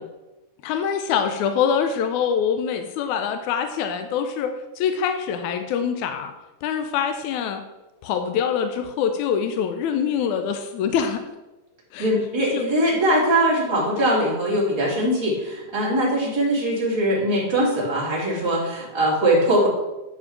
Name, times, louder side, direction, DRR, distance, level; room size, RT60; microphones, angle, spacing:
voice 1, 0.6-6.3 6.6-7.6 8.0-11.2 11.9-12.1 12.5-12.6, left 7 dB, 75° left, 7 dB, 1.9 m, -24 dB
voice 2, 12.0-19.7, right 1 dB, 10° right, -5 dB, 2.4 m, -21 dB
10.5 x 5.2 x 5.8 m, 1.1 s
omnidirectional pair, 3.7 m